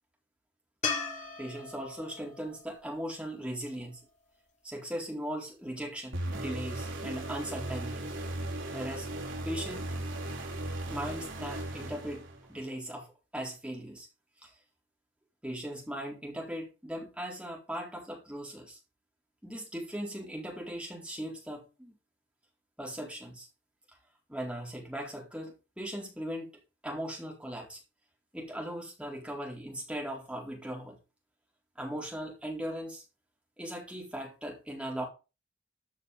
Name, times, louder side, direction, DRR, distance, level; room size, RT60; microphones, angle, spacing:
sound 1, 0.8-4.1 7.3-7.4, left 5 dB, 35° left, 3.5 m, -38 dB
voice 1, 1.4-4.0 4.6-8.1 8.7-9.1 9.4-9.9 10.8-12.2 12.5-13.1 13.3-14.1 14.4-14.5 15.4-18.8 19.4-21.9 22.8-23.5 24.3-26.5 26.8-27.8 28.3-31.0 31.8-33.0 33.6-35.1, equal, 5° right, -1 dB, 4.1 m, -38 dB
sound 2, 6.1-12.6, right 1 dB, 75° right, 3.9 m, -37 dB
14.0 x 6.1 x 5.5 m, 0.31 s
head